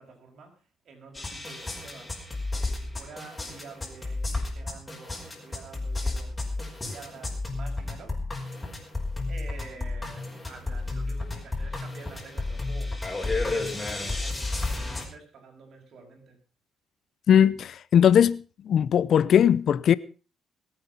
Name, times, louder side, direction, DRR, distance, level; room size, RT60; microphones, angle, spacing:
voice 1, 0.0-2.2 2.5-8.2 9.3-16.4, right 4 dB, 60° right, 6.1 m, -48 dB
sound 1, 1.1-15.0, left 2 dB, 20° left, 5.2 m, -32 dB
voice 2, 17.3-19.9, left 9 dB, 65° left, 0.7 m, -20 dB
22.0 x 8.8 x 5.4 m
cardioid pair, 90°, 0 cm